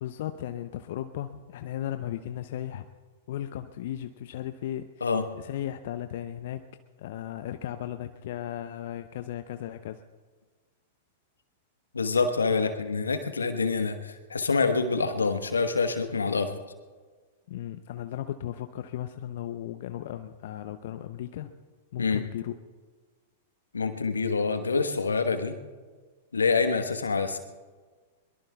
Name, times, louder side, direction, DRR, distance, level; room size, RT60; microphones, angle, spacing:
voice 1, 0.0-2.9 3.3-5.1 5.4-6.6 7.0-10.0 12.5-12.7 17.5-21.5 21.9-22.5, left 12 dB, 60° left, 9 dB, 0.6 m, -36 dB
voice 2, 11.9-16.6 22.0-22.2 23.7-25.6 26.3-27.4, left 4 dB, 85° left, 8 dB, 1.2 m, -26 dB
22.5 x 22.5 x 2.3 m, 1.5 s
figure-of-eight pair, 100°, 0 cm